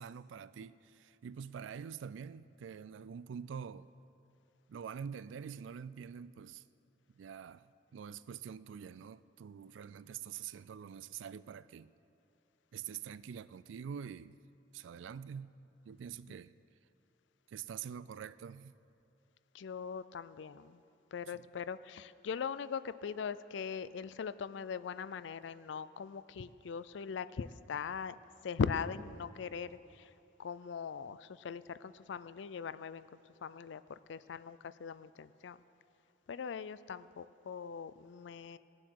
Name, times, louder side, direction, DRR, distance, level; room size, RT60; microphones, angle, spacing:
voice 1, 0.0-3.9 4.7-6.6 7.1-11.9 12.7-14.4 14.7-15.5 15.9-16.6 17.5-18.7 21.3-21.4, right 7 dB, 85° right, 0.3 m, -46 dB
voice 2, 19.5-20.8 21.1-28.2 28.4-30.1 30.4-35.6 36.3-38.6, left 6 dB, 75° left, 0.4 m, -40 dB
20.0 x 7.6 x 4.7 m
head